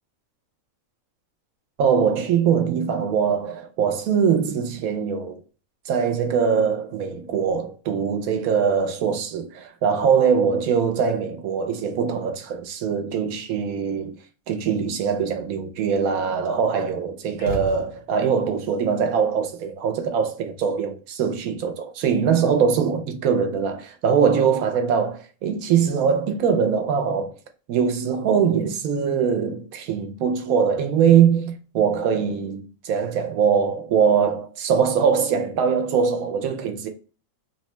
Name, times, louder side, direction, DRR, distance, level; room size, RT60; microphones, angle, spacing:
voice 1, 1.8-5.4 5.9-14.2 14.5-27.3 27.7-36.9, right 6 dB, 85° right, 1.1 m, -22 dB
sound 1, 17.4-18.4, right 2 dB, 70° left, 1.3 m, -33 dB
3.0 x 2.1 x 2.9 m
omnidirectional pair, 1.4 m